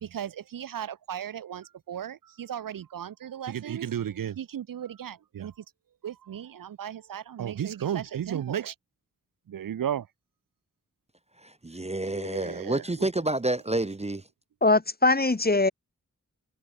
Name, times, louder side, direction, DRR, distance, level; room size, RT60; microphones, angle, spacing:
voice 1, 0.0-5.5 6.0-8.7 9.5-10.1 12.1-12.8, right 9 dB, 80° right, 0.5 m, -34 dB
voice 2, 11.4-14.2, right 2 dB, 20° right, 0.5 m, -29 dB
voice 3, 14.6-15.7, left 2 dB, 30° left, 1.0 m, -21 dB
wide cardioid pair, 50°, 33 cm